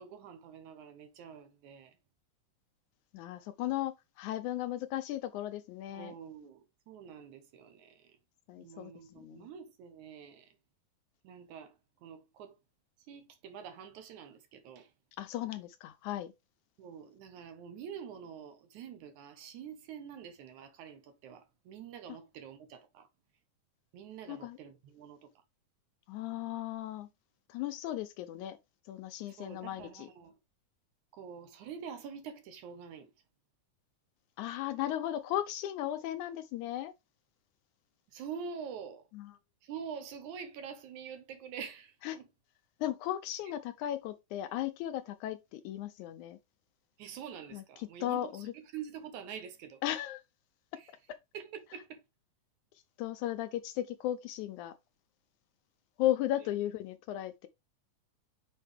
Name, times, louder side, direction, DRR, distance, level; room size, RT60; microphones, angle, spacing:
voice 1, 0.0-2.0 5.9-8.2 8.6-10.6 11.2-12.6 13.0-14.9 16.8-23.1 23.9-25.2 29.3-30.4 31.1-33.1 38.1-39.1 39.6-42.3 43.4-43.5 47.0-49.8 50.8-50.9 51.3-52.0, right 7 dB, 70° right, 2.3 m, -46 dB
voice 2, 3.1-6.1 8.5-9.5 15.2-16.3 24.3-24.6 26.1-27.1 27.5-28.6 28.9-30.1 34.4-36.9 39.1-39.3 42.0-42.2 42.8-46.4 47.5-48.5 49.8-50.2 53.0-54.7 56.0-57.5, left 13 dB, 80° left, 1.8 m, -36 dB
6.4 x 4.3 x 3.4 m
omnidirectional pair, 3.7 m